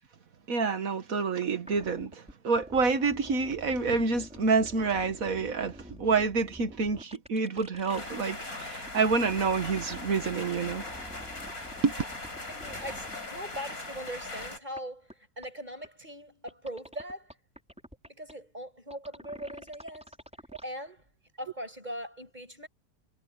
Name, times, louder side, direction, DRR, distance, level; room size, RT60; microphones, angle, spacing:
voice 1, 0.5-10.8 11.8-11.9, right 4 dB, 60° right, 1.8 m, -28 dB
sound 1, 1.6-8.3 8.6-13.3 13.5-13.6 14.1-14.2 14.4-14.5 14.8-14.9 15.1-15.2 15.4-15.5 15.8-15.9 16.5-18.3 18.9-20.6, equal, 5° right, 5.8 m, -48 dB
sound 2, 7.9-14.6, left 2 dB, 65° left, 6.7 m, -40 dB
voice 2, 12.5-17.3 18.1-20.2 20.6-21.0 21.4-22.7, equal, 25° right, 7.2 m, -40 dB
omnidirectional pair, 1.7 m